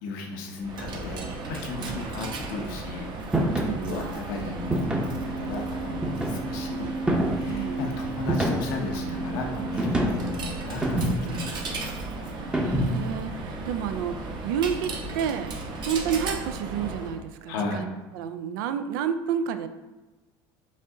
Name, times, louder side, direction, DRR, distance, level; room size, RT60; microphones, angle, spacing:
voice 1, 0.0-3.1 3.5-6.9 7.2-11.9 17.5-17.9, left 3 dB, 85° left, 1 dB, 0.8 m, -35 dB
Coin (dropping), 0.6-17.2, right 2 dB, 45° right, 0.9 m, -34 dB
sound 1, 3.3-3.8 4.7-5.2 6.0-6.6 7.1-7.5 8.3-8.9 9.8-10.3 10.8-11.4 12.5-13.1, right 1 dB, 10° right, 0.7 m, -26 dB
voice 2, 3.5-4.2 7.4-7.9 12.6-15.5 15.8-19.7, right 8 dB, 90° right, 10 dB, 0.4 m, -30 dB
5.2 x 2.6 x 3.7 m, 1.2 s
supercardioid pair, 115°, 10 cm